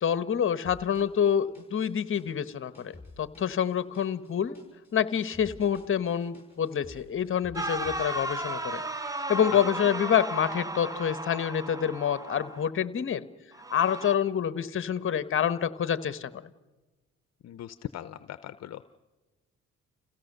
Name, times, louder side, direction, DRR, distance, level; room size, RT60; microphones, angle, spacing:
voice 1, 0.0-4.6 4.9-8.8 9.3-13.2 13.7-16.3, left 8 dB, 45° left, 14 dB, 1.0 m, -27 dB
sound 1, 0.6-9.1 9.3-10.2, left 2 dB, 20° left, 6.8 m, -52 dB
sound 2, 7.5-12.7 13.5-14.1, right 2 dB, 10° right, 0.9 m, -35 dB
voice 2, 17.4-18.8, left 11 dB, 60° left, 13 dB, 0.7 m, -39 dB
28.5 x 16.0 x 6.6 m, 1.2 s
cardioid pair, 90°, 30 cm